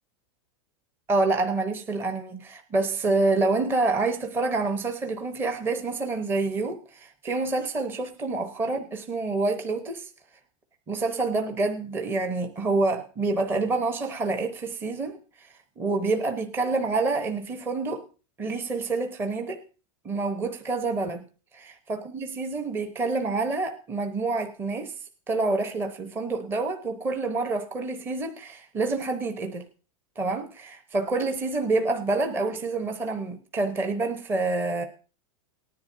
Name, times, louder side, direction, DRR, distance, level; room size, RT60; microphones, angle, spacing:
voice 1, 1.1-10.1 10.9-15.5 15.8-18.0 18.4-19.6 20.0-21.3 21.9-24.9 25.3-29.7 30.2-34.8, right 3 dB, 10° right, 0.8 m, -27 dB
19.0 x 10.5 x 2.6 m
supercardioid pair, 165°, 18 cm